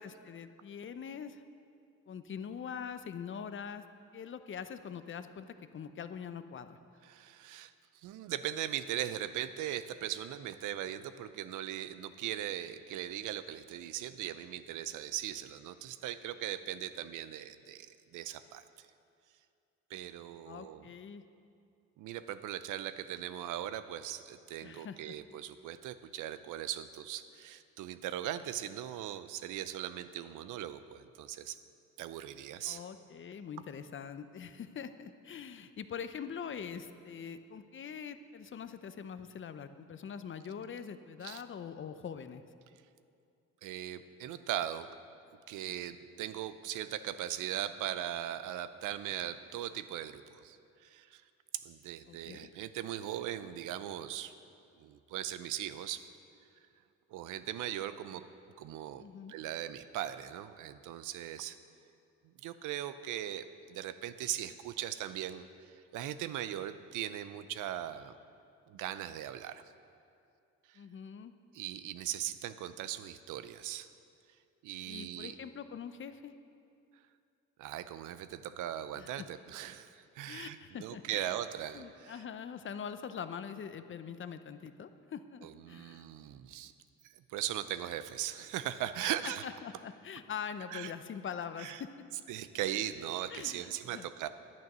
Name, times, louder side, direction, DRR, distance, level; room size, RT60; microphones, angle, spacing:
voice 1, 0.0-1.4 2.1-3.8 4.1-5.5 5.7-6.8 20.5-21.2 24.6-25.1 32.6-42.4 52.1-52.5 59.0-59.3 70.8-71.3 74.8-76.3 79.0-79.3 80.3-81.4 81.7-86.0 89.0-91.9 93.3-94.1, left 7 dB, 40° left, 10 dB, 0.6 m, -43 dB
voice 2, 7.0-7.7 8.0-18.6 19.9-20.9 22.0-31.6 32.0-32.8 41.2-41.4 43.6-44.9 45.5-51.2 51.5-54.3 54.8-56.1 57.1-58.2 58.6-59.0 59.3-61.6 62.4-65.5 65.9-68.1 68.7-69.6 70.7-70.8 71.5-73.9 74.6-75.4 77.6-82.2 85.4-86.7 87.0-89.4 90.7-90.9 91.6-91.8 92.3-94.3, right 12 dB, 85° right, 12 dB, 0.6 m, -39 dB
10.5 x 9.3 x 6.1 m, 2.5 s
cardioid pair, 90°, 30 cm